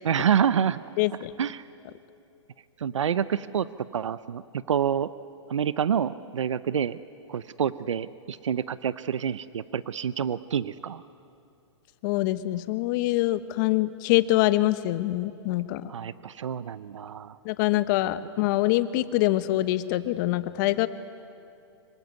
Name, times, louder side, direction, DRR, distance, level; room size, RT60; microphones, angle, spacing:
voice 1, 0.0-0.8 1.4-1.6 2.8-3.7 3.9-4.4 4.7-5.1 5.5-7.0 7.3-11.0 15.9-17.4, right 8 dB, 85° right, 15 dB, 0.8 m, -27 dB
voice 2, 1.0-1.3 12.0-15.9 17.4-20.9, left 16 dB, 40° left, 13 dB, 1.2 m, -24 dB
25.5 x 24.0 x 9.4 m, 2.6 s
hypercardioid pair, 135°, 15 cm